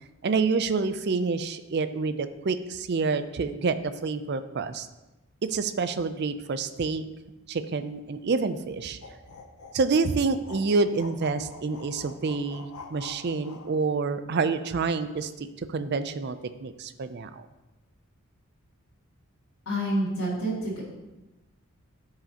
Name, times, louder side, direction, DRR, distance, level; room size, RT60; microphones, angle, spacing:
voice 1, 0.2-4.9 5.5-7.0 7.5-9.0 9.7-17.5, right 4 dB, 50° right, 11 dB, 0.4 m, -28 dB
sound 1, 9.0-13.7, left 4 dB, 85° left, 0.8 m, -46 dB
voice 2, 19.7-20.8, right 1 dB, 70° left, -10 dB, 2.3 m, -28 dB
13.5 x 4.8 x 2.9 m, 1.1 s
head